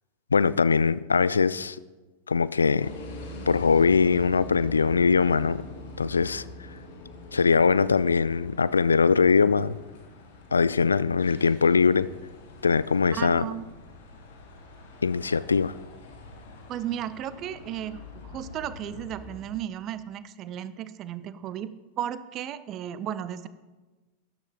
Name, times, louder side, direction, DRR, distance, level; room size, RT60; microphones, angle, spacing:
voice 1, 0.3-1.8 2.3-2.9 3.5-5.6 6.0-6.4 7.3-9.8 10.5-12.1 12.6-13.4 15.0-15.7, left 5 dB, 75° left, 18 dB, 0.3 m, -21 dB
sound 1, 2.8-19.4, left 1 dB, 55° left, 2.0 m, -44 dB
voice 2, 13.2-13.7 16.7-23.5, right 10 dB, 35° right, 15 dB, 0.6 m, -34 dB
13.0 x 10.5 x 3.9 m, 1.2 s
figure-of-eight pair, 90°, 0 cm